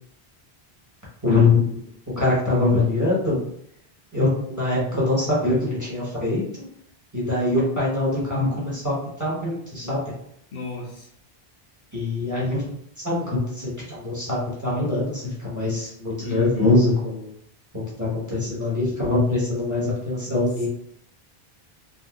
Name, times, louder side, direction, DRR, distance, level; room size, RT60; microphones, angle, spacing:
voice 1, 1.2-3.4 4.1-6.4 7.1-10.1 11.9-12.7 13.0-17.3 17.7-20.7, left 2 dB, 20° right, -7 dB, 1.0 m, -23 dB
voice 2, 10.5-11.1 16.2-16.7, left 4 dB, 65° left, -2 dB, 0.9 m, -33 dB
3.7 x 2.5 x 2.2 m, 0.71 s
omnidirectional pair, 1.1 m